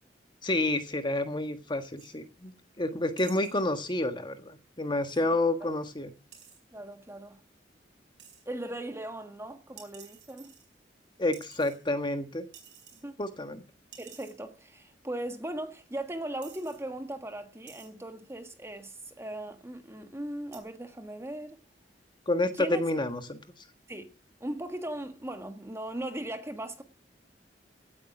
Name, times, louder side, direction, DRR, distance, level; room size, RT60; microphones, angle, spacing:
voice 1, 0.4-2.5 2.8-6.1 11.2-12.4 13.2-13.6 22.3-23.4, left 2 dB, 25° left, 1.6 m, -29 dB
sound 1, 2.0-2.2 3.2-3.6 6.3-6.6 8.2-8.4 9.8-10.9 11.3-12.1 12.5-13.0 13.4-13.5 13.9-14.4 15.3-15.4 16.0-16.1 16.4-16.8 17.7-17.9 18.8-19.1 20.5-20.6, right 8 dB, 75° right, 4.9 m, -52 dB
voice 2, 6.7-7.4 8.4-10.5 12.9-13.2 14.0-21.6 22.5-22.8 23.9-26.8, right 1 dB, 15° right, 1.5 m, -38 dB
17.0 x 8.9 x 6.1 m
head